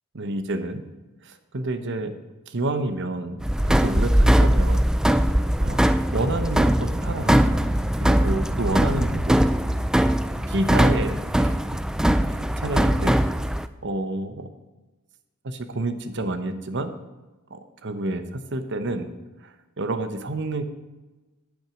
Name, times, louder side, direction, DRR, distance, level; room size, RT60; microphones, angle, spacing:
voice 1, 0.1-0.9 1.2-2.2 2.5-4.8 5.6-5.9 6.1-7.4 8.0-9.4 10.5-11.5 12.3-13.2 13.8-14.5 15.4-16.9 17.5-19.1 19.4-20.6, right 2 dB, 60° right, 9 dB, 1.0 m, -29 dB
sound 1, 3.4-13.7, equal, 5° right, 0.3 m, -21 dB
9.0 x 8.8 x 6.2 m, 1.2 s
head